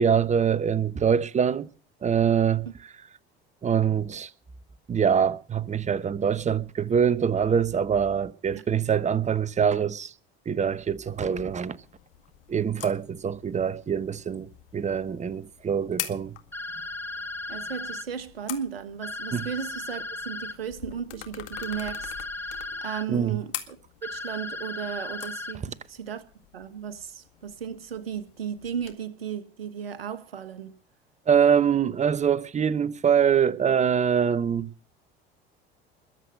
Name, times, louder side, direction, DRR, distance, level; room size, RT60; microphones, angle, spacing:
voice 1, 0.0-1.7 2.0-2.7 3.6-4.3 4.9-10.1 10.5-11.8 12.5-16.3 19.3-19.5 23.1-23.4 31.3-34.7, right 7 dB, 25° right, 1.0 m, -24 dB
sound 1, 11.1-28.9, left 13 dB, 70° left, 2.0 m, -44 dB
Phone Ringing, 16.5-18.0 19.0-20.5 21.5-23.0 24.0-25.5, left 2 dB, 5° left, 1.1 m, -36 dB
voice 2, 17.5-26.2 26.5-30.7, right 8 dB, 80° right, 1.4 m, -35 dB
21.5 x 8.0 x 6.5 m
figure-of-eight pair, 65°, 30 cm